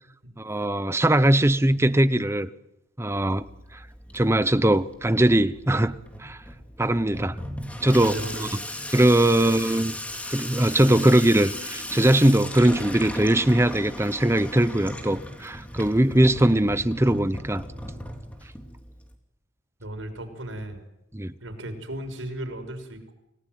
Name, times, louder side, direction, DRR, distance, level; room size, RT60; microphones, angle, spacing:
voice 1, 0.4-2.5 3.0-3.4 3.7-3.8 4.1-6.4 6.8-7.4 7.8-8.5 8.9-9.9 10.3-17.6 21.1-21.3, right 1 dB, 15° right, 0.9 m, -21 dB
Water tap faucet / Sink (filling or washing), 3.1-19.1, left 1 dB, 5° left, 2.9 m, -37 dB
voice 2, 8.0-8.5 9.3-9.5 19.8-20.8 21.4-23.1, right 1 dB, 80° right, 5.6 m, -36 dB
29.5 x 18.5 x 9.3 m
head